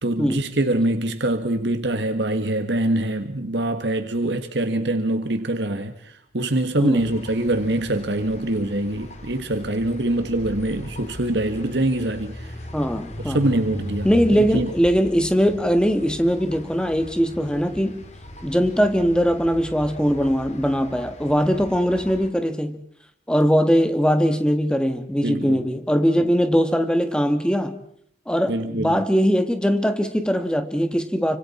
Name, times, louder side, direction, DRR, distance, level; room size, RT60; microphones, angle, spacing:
voice 1, 0.0-5.9 6.3-12.5 13.3-14.7 25.2-25.6 28.5-29.0, right 1 dB, 75° right, 1.5 m, -24 dB
sound 1, 6.9-22.3, equal, 40° left, 2.5 m, -39 dB
voice 2, 12.7-13.4 14.0-18.0 18.4-22.8 23.3-27.8 28.3-31.4, equal, 5° left, 1.5 m, -21 dB
29.5 x 25.5 x 4.3 m
head